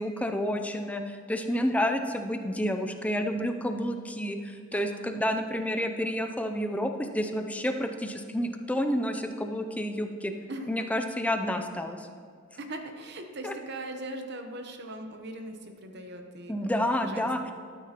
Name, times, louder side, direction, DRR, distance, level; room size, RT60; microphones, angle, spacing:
voice 1, 0.0-10.3 10.7-12.1 13.4-13.5 16.5-17.5, equal, 5° left, 6 dB, 0.4 m, -30 dB
voice 2, 4.7-5.1 10.5-10.9 12.6-17.5, right 1 dB, 55° right, 5 dB, 0.9 m, -40 dB
13.0 x 9.1 x 2.9 m, 2.1 s
head